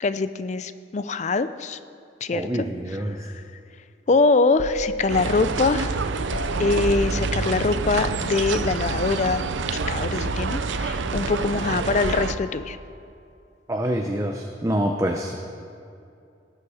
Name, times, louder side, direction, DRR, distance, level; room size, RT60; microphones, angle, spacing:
voice 1, 0.0-1.8 2.2-2.5 2.9-3.4 4.1-6.0 6.6-9.4 9.7-12.8, left 3 dB, 40° left, 13 dB, 0.4 m, -23 dB
voice 2, 2.3-3.2 13.7-15.4, equal, 15° right, 2 dB, 0.6 m, -26 dB
sound 1, 4.6-9.0 9.3-9.5 9.8-12.8, equal, 85° left, 0.9 m, -35 dB
sound 2, 5.1-12.3, right 4 dB, 80° right, 0.6 m, -27 dB
18.5 x 7.6 x 4.9 m, 2.5 s
head